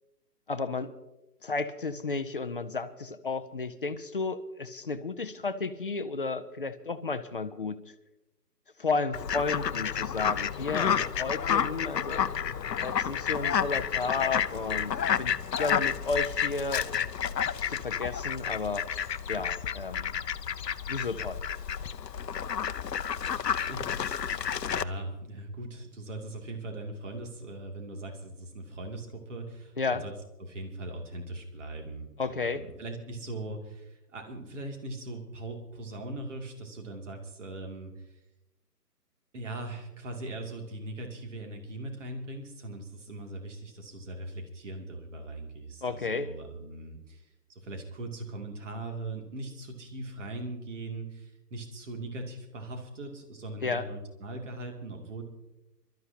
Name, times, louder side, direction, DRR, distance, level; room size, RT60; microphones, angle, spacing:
voice 1, 0.5-0.9 1.4-7.8 8.8-12.3 12.7-17.1 17.6-18.9 19.3-20.1 20.9-21.4 29.8-30.0 32.2-32.6 45.8-46.3 53.6-53.8, left 4 dB, 35° left, 11 dB, 0.6 m, -33 dB
Fowl, 9.1-24.8, left 8 dB, 85° left, 0.8 m, -30 dB
voice 2, 23.7-30.1 30.4-38.2 39.3-55.2, right 2 dB, 45° right, 3 dB, 2.7 m, -40 dB
26.0 x 13.0 x 2.8 m, 0.98 s
hypercardioid pair, 155°, 48 cm